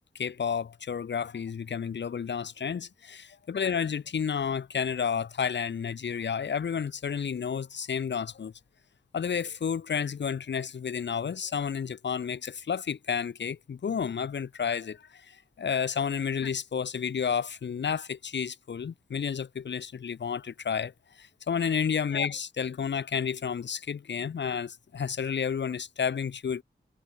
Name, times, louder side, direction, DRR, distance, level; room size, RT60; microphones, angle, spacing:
voice 1, 0.1-8.5 9.1-20.9 21.2-26.6, left 7 dB, 75° left, 1.0 m, -31 dB
wide cardioid pair, 95°, 18 cm